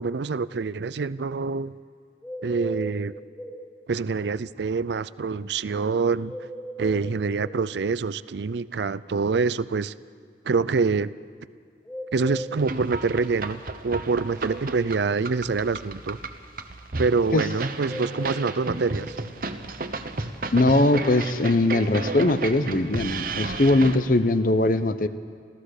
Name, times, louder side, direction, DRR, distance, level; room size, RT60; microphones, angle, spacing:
voice 1, 0.0-1.7 2.4-3.2 3.9-6.3 6.8-9.9 10.5-11.1 12.1-16.2 17.0-19.2, right 4 dB, 70° right, 17 dB, 0.5 m, -26 dB
sound 1, 2.2-3.6 6.2-7.6 11.9-13.3 17.8-19.2, equal, 5° left, 2.8 m, -37 dB
sound 2, 12.6-24.0, right 3 dB, 50° right, 1.0 m, -33 dB
voice 2, 20.5-25.1, left 2 dB, 50° left, 12 dB, 0.7 m, -21 dB
27.5 x 15.0 x 6.7 m, 2.1 s
head